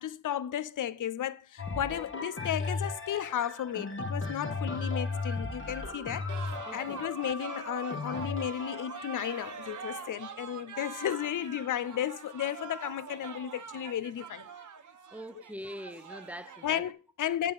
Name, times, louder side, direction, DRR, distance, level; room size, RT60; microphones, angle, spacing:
voice 1, 0.0-14.4 16.6-17.5, left 10 dB, 60° left, 0.6 m, -34 dB
sound 1, 1.6-11.4 12.0-12.1, left 3 dB, 35° left, 1.5 m, -36 dB
sound 2, 6.3-16.9, right 6 dB, 60° right, 1.2 m, -44 dB
voice 2, 6.7-7.1 15.1-16.8, equal, 5° right, 0.6 m, -43 dB
8.4 x 5.7 x 6.3 m
cardioid pair, 75°, 34 cm